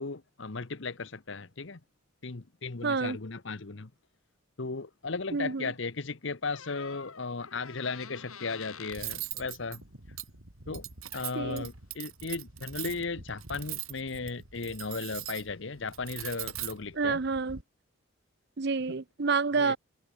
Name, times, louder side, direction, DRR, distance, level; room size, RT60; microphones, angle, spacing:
voice 1, 0.0-1.8 2.2-3.9 4.6-9.8 10.7-10.8 11.1-17.2 19.6-19.8, left 4 dB, 60° left, 1.0 m, -36 dB
voice 2, 2.8-3.2 5.3-5.7 11.3-11.7 16.9-17.6 18.6-19.8, right 4 dB, 50° right, 0.7 m, -28 dB
Door, 6.5-9.1 10.8-10.9 11.1-11.5, left 6 dB, 90° left, 3.7 m, -47 dB
Cutlery silverware, 8.9-17.6, right 11 dB, 80° right, 3.8 m, -41 dB
head